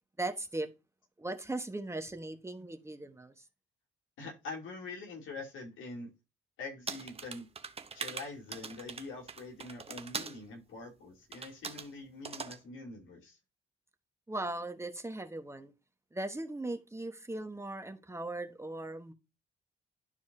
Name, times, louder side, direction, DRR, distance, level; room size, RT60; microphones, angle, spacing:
voice 1, 0.2-0.7 1.2-3.4 14.3-15.7 16.1-19.1, right 2 dB, 15° right, 1.1 m, -38 dB
voice 2, 4.2-6.1 6.6-7.5 7.9-13.4, left 3 dB, 80° left, 2.8 m, -44 dB
sound 1, 6.9-10.4 11.3-11.9 12.2-12.6, right 5 dB, 30° right, 0.8 m, -41 dB
11.5 x 4.7 x 2.7 m
cardioid pair, 90°, 20 cm